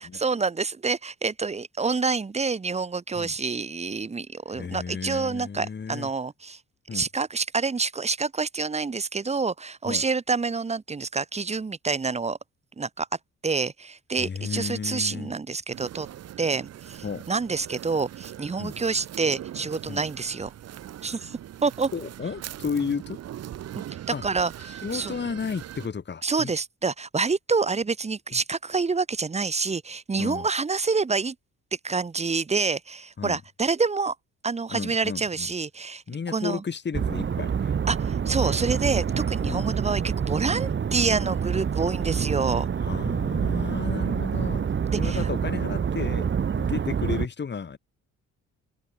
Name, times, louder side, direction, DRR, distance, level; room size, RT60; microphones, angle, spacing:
voice 1, 0.1-6.6 6.9-12.4 12.8-13.1 13.4-16.1 16.4-20.5 21.0-21.9 24.2-25.1 26.2-31.3 31.8-34.1 34.4-36.0 36.3-36.6 37.9-42.7 44.9-45.2, right 4 dB, 20° right, 1.0 m, -27 dB
voice 2, 4.5-6.1 6.9-7.1 9.8-10.0 14.2-15.3 17.0-17.2 18.6-18.8 19.9-20.0 21.9-23.2 24.1-24.2 24.6-26.5 28.3-28.4 30.2-30.5 33.2-33.4 34.7-35.5 36.1-37.8 39.4-39.7 42.8-44.7 45.0-46.3 46.6-47.8, left 6 dB, 35° left, 2.8 m, -33 dB
sound 1, 15.7-25.9, right 11 dB, 55° right, 0.9 m, -41 dB
sound 2, 36.9-47.3, right 7 dB, 40° right, 1.5 m, -27 dB
cardioid pair, 90°, 30 cm